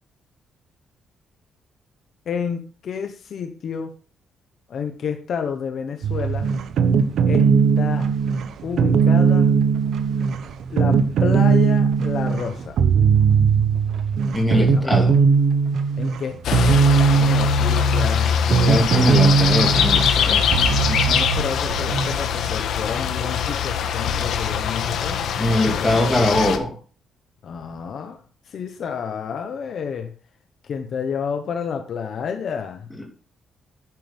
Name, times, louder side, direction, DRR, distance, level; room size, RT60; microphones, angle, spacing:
voice 1, 2.3-3.9 4.7-6.5 7.2-7.5 7.8-8.1 8.6-9.5 10.7-12.8 14.7-14.8 16.0-16.8 17.1-19.3 20.8-25.2 25.5-26.2 27.4-28.2 28.5-30.1 30.6-32.9, left 6 dB, 45° left, 6 dB, 1.2 m, -30 dB
sound 1, 6.0-22.2, right 5 dB, 60° right, 1.0 m, -19 dB
voice 2, 14.3-15.1 18.6-20.5 25.4-26.8 33.0-33.1, left 1 dB, 5° left, 1 dB, 2.7 m, -22 dB
sound 2, 16.4-26.6, left 7 dB, 65° left, 1.6 m, -22 dB
11.0 x 9.7 x 3.6 m, 0.36 s
cardioid pair, 175°, 0 cm